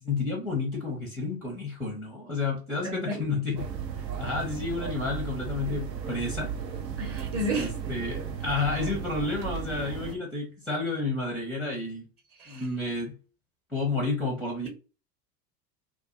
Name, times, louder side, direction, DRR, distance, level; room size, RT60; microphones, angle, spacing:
voice 1, 0.0-3.7 4.0-6.5 7.6-12.0 12.5-13.1 13.7-14.7, left 3 dB, ahead, 0.5 m, -31 dB
voice 2, 2.8-3.2 7.0-7.7 12.4-12.6, right 1 dB, 30° right, 0.8 m, -31 dB
sound 1, 3.6-10.2, right 7 dB, 85° right, 0.6 m, -35 dB
2.3 x 2.2 x 2.4 m
figure-of-eight pair, 75°, 49 cm